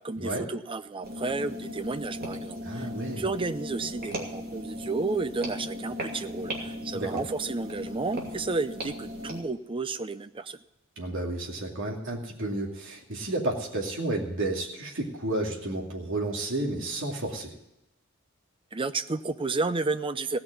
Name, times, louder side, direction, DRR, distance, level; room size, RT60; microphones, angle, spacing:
voice 1, 0.0-2.9 3.2-10.6 18.7-20.4, right 3 dB, 25° right, 12 dB, 0.6 m, -32 dB
sound 1, 1.0-9.4, equal, 45° right, 2.5 m, -37 dB
voice 2, 2.6-3.2 6.9-7.2 11.0-17.5, right 2 dB, 65° right, -1 dB, 2.5 m, -31 dB
16.5 x 6.0 x 9.6 m, 0.88 s
head